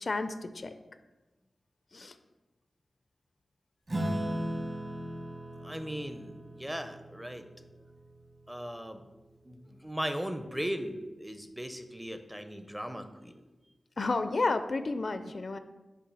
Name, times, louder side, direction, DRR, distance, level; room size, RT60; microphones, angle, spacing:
voice 1, 0.0-0.7 1.9-2.1 14.0-15.6, left 3 dB, 55° left, 10 dB, 0.4 m, -31 dB
Acoustic guitar / Strum, 3.9-8.7, right 1 dB, 45° right, 1.4 m, -37 dB
voice 2, 5.6-7.5 8.5-9.0 9.4-13.3, equal, 10° right, 8 dB, 0.5 m, -38 dB
6.8 x 2.7 x 5.4 m, 1.1 s
wide cardioid pair, 70°, 0 cm